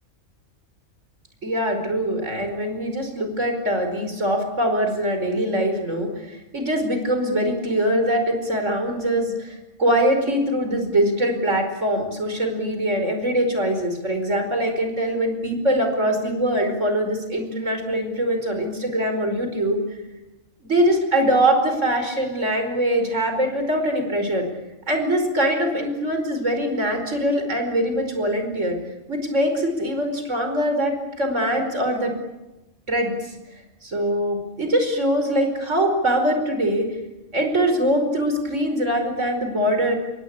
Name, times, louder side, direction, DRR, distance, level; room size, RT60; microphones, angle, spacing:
voice 1, 1.4-19.8 20.6-24.5 24.9-28.8 29.1-32.2 32.9-33.3 33.8-36.9 37.3-40.0, right 1 dB, 65° right, 6 dB, 5.3 m, -23 dB
28.0 x 22.5 x 8.8 m, 1.0 s
omnidirectional pair, 1.4 m